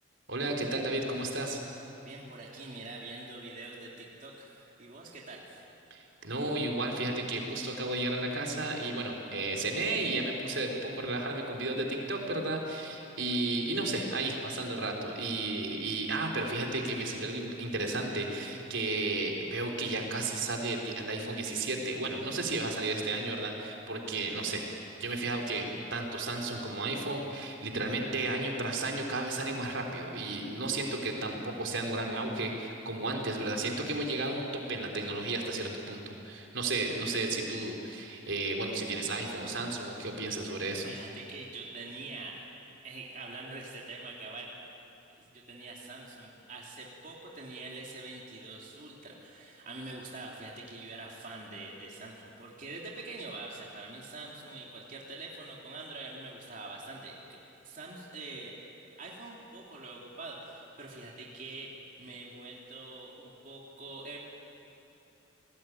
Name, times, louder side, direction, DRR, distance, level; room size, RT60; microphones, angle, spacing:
voice 1, 0.3-1.6 5.9-40.9, right 2 dB, 70° right, 1 dB, 3.7 m, -33 dB
voice 2, 2.0-5.7 40.8-42.5 42.8-44.5 45.2-57.2 57.6-58.6 59.0-64.2, right 2 dB, 40° right, -3 dB, 3.1 m, -44 dB
29.5 x 19.5 x 9.3 m, 2.9 s
head